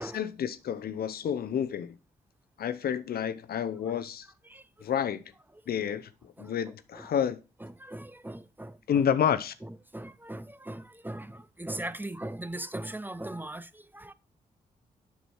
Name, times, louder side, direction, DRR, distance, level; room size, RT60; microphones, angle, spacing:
voice 1, 0.0-2.0 2.6-4.3 4.8-5.2 5.7-7.4 8.9-9.5, left 8 dB, 70° left, 0.6 m, -29 dB
voice 2, 7.6-9.0 9.6-14.1, right 1 dB, 10° right, 0.6 m, -39 dB
7.0 x 6.1 x 4.4 m
supercardioid pair, 50°, 16 cm